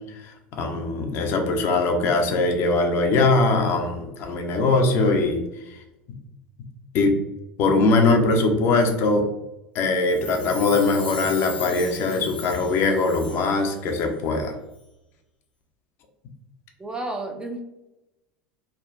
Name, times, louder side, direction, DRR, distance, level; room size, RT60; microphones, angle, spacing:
voice 1, 0.2-5.4 6.9-7.2 7.6-9.3 9.7-14.5, left 3 dB, 50° left, 3 dB, 0.5 m, -21 dB
Chime, 10.0-13.6 13.9-14.0, left 3 dB, 85° left, 0.8 m, -38 dB
voice 2, 16.8-17.6, right 2 dB, 15° right, 4 dB, 0.5 m, -31 dB
3.3 x 2.1 x 2.5 m, 0.92 s
hypercardioid pair, 75°, 5 cm